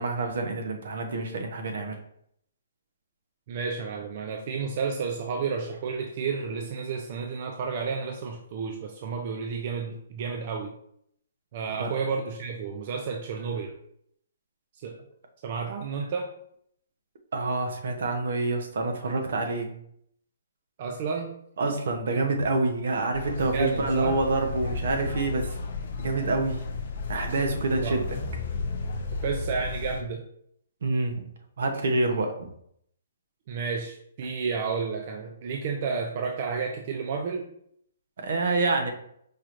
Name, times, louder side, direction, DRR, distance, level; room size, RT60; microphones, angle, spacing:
voice 1, 0.0-2.0 11.7-11.9 17.3-19.7 21.6-25.5 26.0-26.6 27.1-28.2 30.8-31.2 31.6-32.3 38.2-38.9, right 3 dB, 60° right, 4 dB, 0.8 m, -27 dB
voice 2, 3.5-10.7 11.5-13.7 14.8-15.0 15.4-16.3 20.8-21.4 22.1-22.2 23.5-24.2 27.8-28.0 29.1-30.2 33.5-37.5, right 5 dB, 35° right, 2 dB, 0.4 m, -31 dB
sound 1, 23.1-30.0, left 3 dB, 50° left, 0.6 m, -33 dB
4.8 x 2.9 x 2.5 m, 0.69 s
hypercardioid pair, 165°, 0 cm